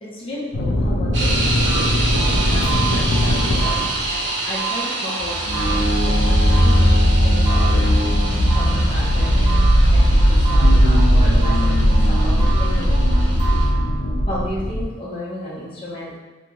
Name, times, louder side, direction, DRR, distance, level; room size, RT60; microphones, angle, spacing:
voice 1, 0.0-3.9 4.4-7.9 8.5-9.6 9.9-13.0 14.3-16.2, equal, 30° left, -7 dB, 0.6 m, -33 dB
sound 1, 0.5-4.2 5.2-14.8, equal, 85° left, 0.5 m, -17 dB
sound 2, 1.1-13.7, right 2 dB, 75° right, 0.5 m, -28 dB
sound 3, 1.6-14.2, right 6 dB, 25° right, 0.6 m, -32 dB
2.5 x 2.2 x 3.0 m, 1.1 s
head